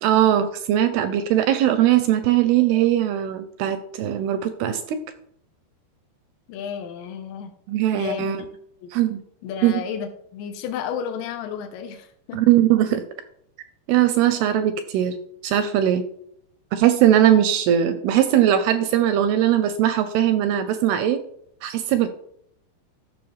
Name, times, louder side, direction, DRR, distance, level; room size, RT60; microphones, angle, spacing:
voice 1, 0.0-5.0 7.7-8.4 8.9-9.2 9.6-9.8 12.3-13.0 13.9-15.2 15.4-16.0 16.7-21.2 21.6-22.1, right 11 dB, 85° right, 11 dB, 2.3 m, -20 dB
voice 2, 6.5-7.5 7.9-8.4 8.8-8.9 9.4-12.4, left 7 dB, 80° left, 4 dB, 3.2 m, -32 dB
14.0 x 6.3 x 3.2 m, 0.70 s
omnidirectional pair, 5.1 m